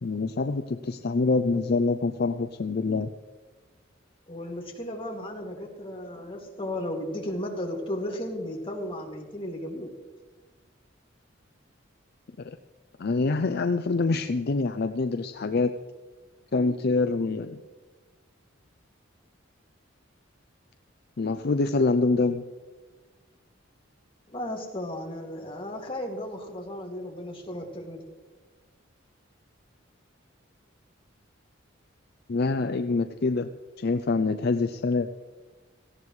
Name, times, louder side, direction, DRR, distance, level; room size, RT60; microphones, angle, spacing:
voice 1, 0.0-3.1 13.0-15.7 16.5-17.6 21.2-22.4 32.3-33.5 33.8-35.1, left 3 dB, 55° left, 9 dB, 0.5 m, -25 dB
voice 2, 4.3-9.9 24.3-28.1, left 1 dB, 30° left, 0 dB, 2.4 m, -35 dB
18.0 x 15.5 x 3.2 m, 1.3 s
head